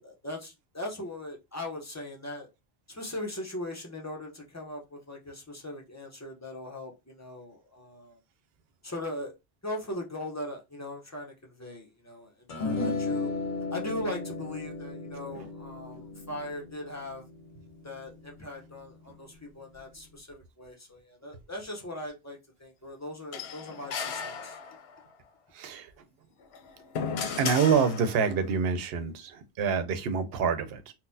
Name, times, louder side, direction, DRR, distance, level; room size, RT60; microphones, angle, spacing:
voice 1, 0.0-2.5 2.9-8.2 8.8-9.3 9.6-13.3 13.7-17.3 17.8-24.6, left 1 dB, 20° left, 0.6 m, -39 dB
sound 1, 12.5-19.0, left 3 dB, 55° left, 0.9 m, -35 dB
sound 2, 23.3-25.1 26.4-28.4, left 6 dB, 80° left, 0.8 m, -35 dB
voice 2, 25.5-25.9 27.4-30.9, right 6 dB, 70° right, 0.8 m, -27 dB
3.8 x 2.1 x 2.6 m
omnidirectional pair, 1.1 m